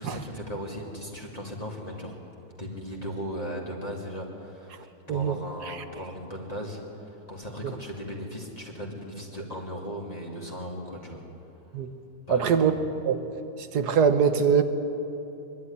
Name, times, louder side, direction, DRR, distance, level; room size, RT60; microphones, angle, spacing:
voice 1, 0.0-2.2 2.6-11.2 12.3-12.6, equal, 25° left, -2 dB, 2.3 m, -37 dB
voice 2, 12.3-12.7 13.0-13.2 13.7-14.6, right 7 dB, 80° right, 9 dB, 1.6 m, -22 dB
24.0 x 11.5 x 10.0 m, 2.9 s
omnidirectional pair, 1.7 m